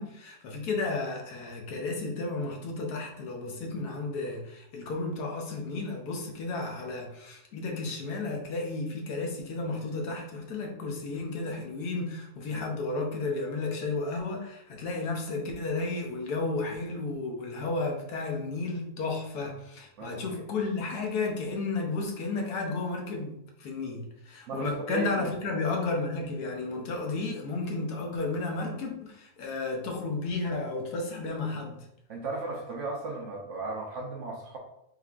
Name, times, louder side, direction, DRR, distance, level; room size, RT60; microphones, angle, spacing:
voice 1, 0.0-31.8, left 3 dB, 90° left, 1 dB, 1.4 m, -33 dB
voice 2, 20.0-20.4 24.5-25.3 32.1-34.6, right 3 dB, 60° right, 0 dB, 0.9 m, -35 dB
4.8 x 3.3 x 2.4 m, 0.80 s
omnidirectional pair, 1.6 m